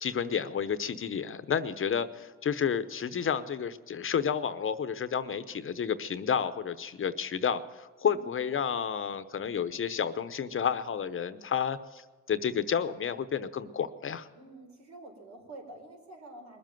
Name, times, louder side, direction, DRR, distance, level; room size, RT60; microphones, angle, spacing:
voice 1, 0.0-12.0 12.3-14.3, left 7 dB, 45° left, 13 dB, 0.8 m, -31 dB
voice 2, 8.0-8.4 14.3-16.6, right 2 dB, 65° right, 2 dB, 4.4 m, -48 dB
21.0 x 7.6 x 9.2 m, 1.3 s
cardioid pair, 90°, 30 cm